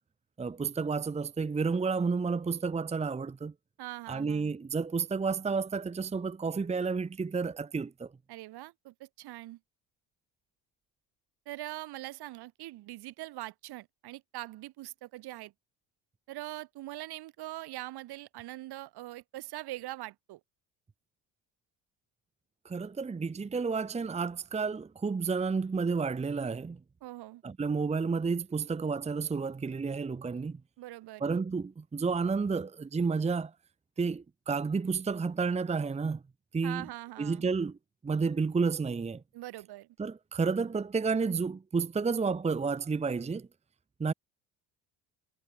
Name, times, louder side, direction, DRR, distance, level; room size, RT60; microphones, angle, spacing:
voice 1, 0.4-3.5 4.1-8.1 22.6-26.8 27.4-30.6 31.2-33.5 34.0-36.2 36.5-36.8 37.2-37.8 38.0-39.2 40.0-43.5 44.0-44.1, right 4 dB, 15° right, 0.9 m, -31 dB
voice 2, 3.8-4.5 8.3-9.6 11.5-15.5 16.3-20.4 27.0-27.4 30.8-31.3 36.6-37.5 39.3-39.9, right 16 dB, 70° right, 7.5 m, -42 dB
supercardioid pair, 95°, 40 cm